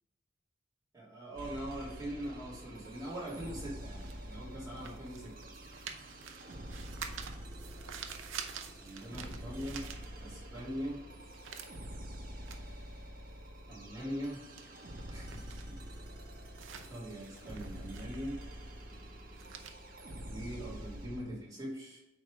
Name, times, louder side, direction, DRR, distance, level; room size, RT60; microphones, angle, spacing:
voice 1, 0.9-5.5 8.8-9.9 10.2-11.0 12.5-12.9 13.7-14.4 15.1-15.8 16.9-18.4 20.3-22.0, equal, 20° right, -8 dB, 2.8 m, -42 dB
sound 1, 1.4-21.2, equal, 45° right, 1.4 m, -47 dB
sound 2, 2.8-10.6 10.9-21.0, right 7 dB, 85° right, 0.7 m, -49 dB
8.8 x 3.6 x 5.1 m, 1.0 s
head